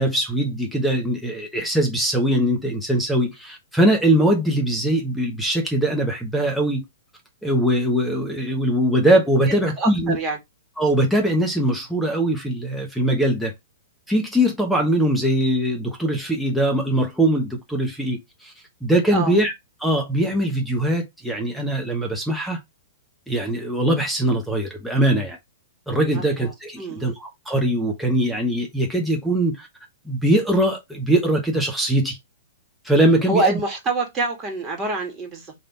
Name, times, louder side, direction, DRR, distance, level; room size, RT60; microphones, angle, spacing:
voice 1, 0.0-6.8 7.4-10.2 10.8-13.5 14.1-18.5 18.8-19.5 19.8-22.6 23.3-25.4 25.9-29.7 30.1-32.2 32.8-33.6, right 1 dB, ahead, 0.9 m, -21 dB
voice 2, 9.5-10.4 19.1-19.4 26.1-26.5 26.8-27.1 33.3-35.5, right 3 dB, 20° right, 1.7 m, -26 dB
3.2 x 2.7 x 4.2 m
hypercardioid pair, 125°, 0 cm